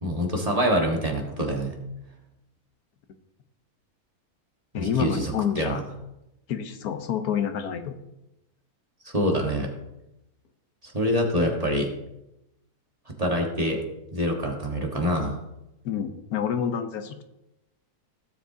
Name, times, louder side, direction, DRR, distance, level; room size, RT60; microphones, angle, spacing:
voice 1, 0.0-1.8 4.8-5.8 9.0-9.7 10.8-11.9 13.1-13.8 14.1-15.4, equal, 25° right, 0 dB, 1.4 m, -25 dB
voice 2, 4.7-5.8 6.5-8.0 15.8-17.2, left 8 dB, 75° left, 8 dB, 1.3 m, -28 dB
16.5 x 7.2 x 2.7 m, 0.91 s
omnidirectional pair, 1.6 m